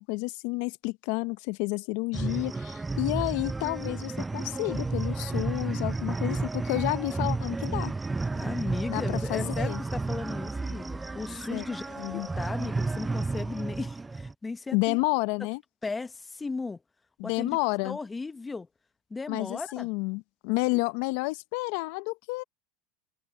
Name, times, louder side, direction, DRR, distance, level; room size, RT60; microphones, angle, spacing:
voice 1, 0.0-7.9 8.9-9.8 11.5-11.6 12.0-12.3 14.7-15.6 17.2-18.0 19.3-22.4, left 25 dB, 65° left, 0.7 m, -30 dB
sound 1, 2.1-14.3, right 3 dB, 15° right, 0.5 m, -32 dB
voice 2, 8.3-11.8 12.1-15.0 15.8-16.8 17.2-17.6 17.8-18.7 19.1-19.9, left 3 dB, 15° left, 0.9 m, -36 dB
hypercardioid pair, 100°, 0 cm